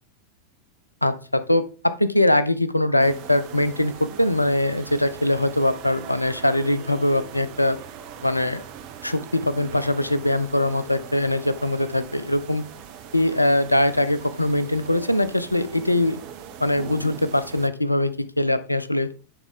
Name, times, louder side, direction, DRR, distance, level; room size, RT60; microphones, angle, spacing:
voice 1, 1.0-7.8 8.2-8.6 9.0-12.6 13.1-16.2 16.6-19.1, left 1 dB, 85° left, 14 dB, 0.5 m, -22 dB
sound 1, 3.0-17.7, right 8 dB, 45° right, 0.9 m, -41 dB
9.0 x 3.8 x 3.8 m, 0.36 s
figure-of-eight pair, 90°, 0 cm